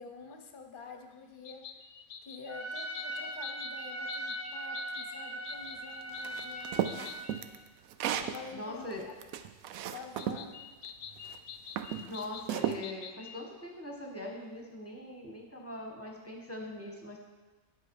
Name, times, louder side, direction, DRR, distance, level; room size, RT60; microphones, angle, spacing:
voice 1, 0.0-1.8 2.2-7.2 8.2-9.1 9.9-10.6, left 4 dB, 45° left, 5 dB, 1.0 m, -48 dB
sound 1, 1.4-7.4 10.2-13.4, left 7 dB, 70° left, 1.0 m, -46 dB
Trumpet, 2.5-7.4, right 1 dB, 55° right, 1.9 m, -40 dB
sound 2, 6.2-8.4 8.9-10.4 11.2-11.4 11.8-12.8, right 10 dB, 85° right, 1.0 m, -34 dB
voice 2, 8.5-9.0 12.0-17.2, left 1 dB, 10° left, 0 dB, 1.3 m, -42 dB
9.6 x 8.1 x 4.7 m, 1.2 s
omnidirectional pair, 1.4 m